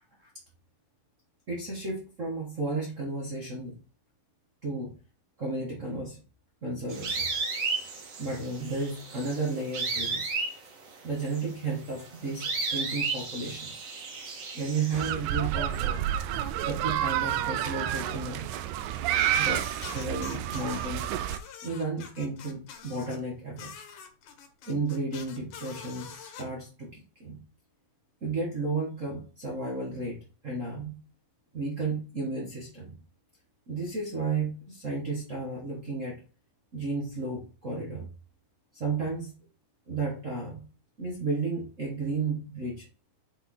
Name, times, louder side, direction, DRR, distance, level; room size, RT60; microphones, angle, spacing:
voice 1, 1.5-3.7 4.6-4.9 5.4-6.2 6.6-7.3 8.2-10.3 11.0-13.7 14.5-16.1 16.6-18.5 19.3-21.1 21.6-23.7 24.7-27.4 28.2-30.2 30.4-31.0 31.5-32.9 33.7-36.2 36.7-38.1 38.7-39.4 39.9-40.6 41.0-42.9, right 3 dB, 70° right, -4 dB, 0.7 m, -33 dB
sound 1, 6.9-15.1, right 4 dB, 50° right, 2.4 m, -34 dB
sound 2, 14.9-21.4, right 11 dB, 85° right, 1.7 m, -29 dB
sound 3, 19.1-20.9 21.3-23.2 23.6-26.4, left 7 dB, 70° left, 2.5 m, -45 dB
9.3 x 4.1 x 3.8 m, 0.36 s
omnidirectional pair, 4.0 m